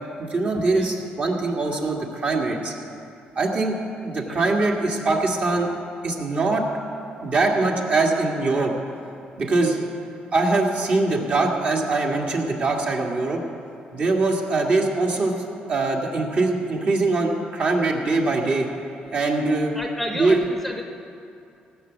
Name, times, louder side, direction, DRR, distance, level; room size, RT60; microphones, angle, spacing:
voice 1, 0.2-2.7 3.4-5.7 6.0-6.7 7.2-8.7 9.4-9.8 10.3-13.4 13.9-15.4 15.7-18.7 19.1-19.8 20.1-20.4, right 3 dB, 45° right, 0 dB, 1.9 m, -22 dB
voice 2, 19.7-20.8, left 1 dB, 5° left, 3 dB, 0.8 m, -31 dB
17.0 x 6.1 x 8.1 m, 2.6 s
cardioid pair, 125°, 3 cm